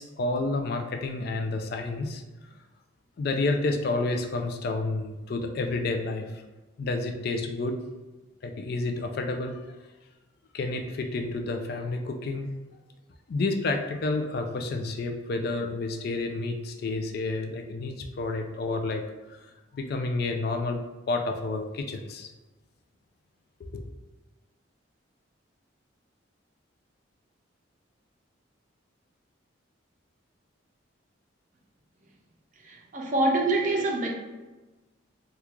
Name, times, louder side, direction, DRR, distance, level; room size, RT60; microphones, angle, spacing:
voice 1, 0.0-2.2 3.2-6.4 6.8-7.8 8.4-9.6 10.5-12.5 13.3-19.0 19.7-20.8 21.1-22.3 23.6-23.8, left 2 dB, 50° left, 5 dB, 0.3 m, -30 dB
voice 2, 32.6-34.1, right 2 dB, 40° right, 0 dB, 0.6 m, -25 dB
3.6 x 2.3 x 3.0 m, 1.1 s
head